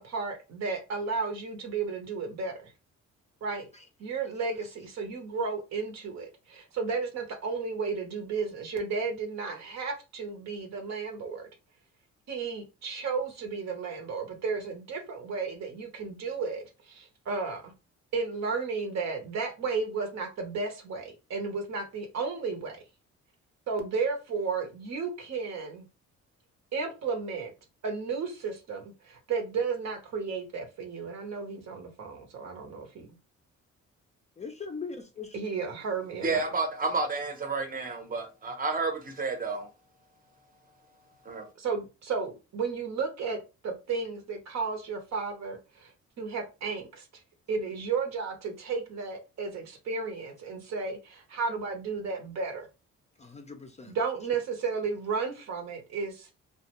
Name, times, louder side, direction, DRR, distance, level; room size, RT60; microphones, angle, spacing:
voice 1, 0.0-2.7 3.4-3.7 4.0-11.5 12.3-17.7 18.1-22.8 23.7-25.9 26.7-27.5 27.8-33.1 35.3-36.4 41.6-43.4 43.6-45.9 46.2-47.1 47.5-52.7 53.8-56.3, right 4 dB, 60° right, 0.8 m, -33 dB
voice 2, 34.4-35.5 53.2-53.9, left 5 dB, 25° left, 0.4 m, -41 dB
voice 3, 36.2-39.7 41.2-41.5, right 3 dB, 30° right, 0.7 m, -30 dB
2.3 x 2.2 x 2.9 m
cardioid pair, 90°, 30 cm